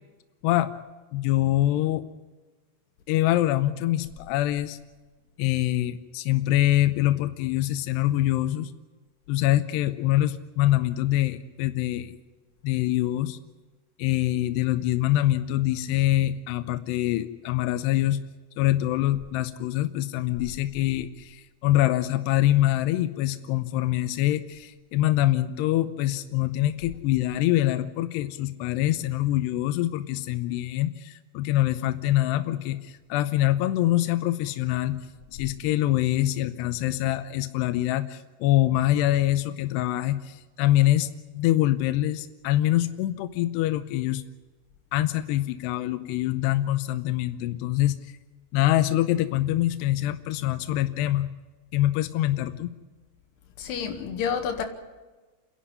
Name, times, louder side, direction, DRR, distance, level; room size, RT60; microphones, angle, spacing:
voice 1, 1.1-2.0 3.1-4.8 5.4-8.7 9.3-12.1 12.6-13.4 14.0-18.2 18.6-35.0 35.3-41.1 41.4-44.2 44.9-48.1 48.5-51.3 51.7-52.7, left 14 dB, 80° left, 10 dB, 2.4 m, -24 dB
voice 2, 53.6-54.6, left 7 dB, 60° left, 5 dB, 3.6 m, -29 dB
29.5 x 11.5 x 9.9 m, 1.3 s
omnidirectional pair, 5.7 m